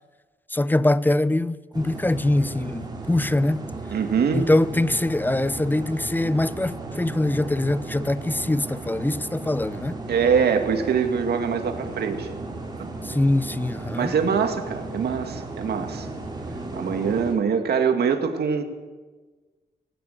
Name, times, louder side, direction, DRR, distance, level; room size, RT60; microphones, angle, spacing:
voice 1, 0.5-3.7 4.3-10.0 13.0-14.1, left 1 dB, 10° left, 0.7 m, -23 dB
sound 1, 1.7-17.3, right 2 dB, 25° right, 5.0 m, -35 dB
voice 2, 3.9-4.5 10.1-12.3 12.8-12.9 14.0-16.1 16.7-18.6, right 6 dB, 80° right, 2.4 m, -23 dB
19.0 x 18.5 x 8.3 m
wide cardioid pair, 110°, 16 cm